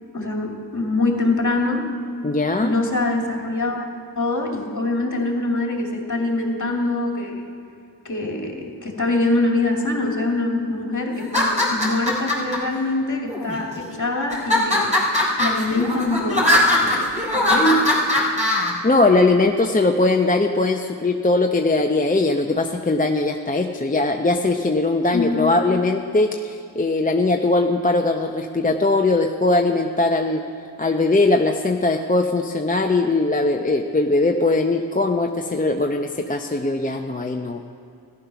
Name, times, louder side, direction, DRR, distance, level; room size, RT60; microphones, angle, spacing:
voice 1, 0.1-1.9 2.6-3.9 4.2-7.4 8.0-14.9 15.4-17.9 25.1-25.6, left 2 dB, 45° left, 1 dB, 2.5 m, -24 dB
voice 2, 2.2-2.7 18.8-30.4 30.8-37.6, left 2 dB, 20° left, 3 dB, 0.7 m, -20 dB
sound 1, 11.2-12.6 13.3-13.8 14.3-18.7, left 1 dB, 15° right, 3.9 m, -20 dB
14.0 x 11.0 x 5.9 m, 2.6 s
cardioid pair, 60°, 42 cm